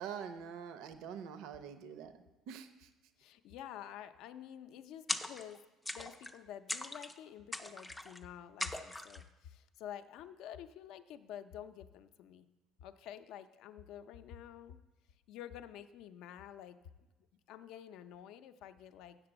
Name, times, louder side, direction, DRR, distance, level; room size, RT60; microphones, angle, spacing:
voice 1, 0.0-2.1 2.5-2.7, right 7 dB, 70° right, 10 dB, 0.6 m, -44 dB
voice 2, 3.2-5.6 5.9-12.5 12.8-14.8 15.3-16.8 17.5-19.2, left 10 dB, 65° left, 10 dB, 0.5 m, -49 dB
sound 1, 5.1-5.6 5.8-6.4 6.7-7.2 7.5-8.2 8.6-9.2, left 1 dB, 5° left, 0.3 m, -40 dB
7.4 x 6.8 x 7.9 m, 1.1 s
cardioid pair, 170°, 0 cm